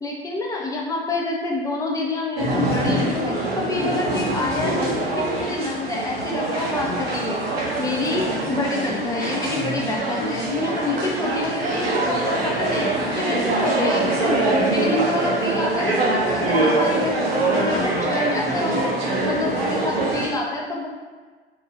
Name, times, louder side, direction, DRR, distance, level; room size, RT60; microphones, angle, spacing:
voice 1, 0.0-7.4 7.8-12.9 13.1-18.9 19.2-20.9, left 2 dB, 10° left, -2 dB, 0.4 m, -27 dB
sound 1, 2.4-20.3, right 1 dB, 85° right, 0.7 m, -23 dB
2.9 x 2.2 x 2.4 m, 1.4 s
figure-of-eight pair, 75°, 29 cm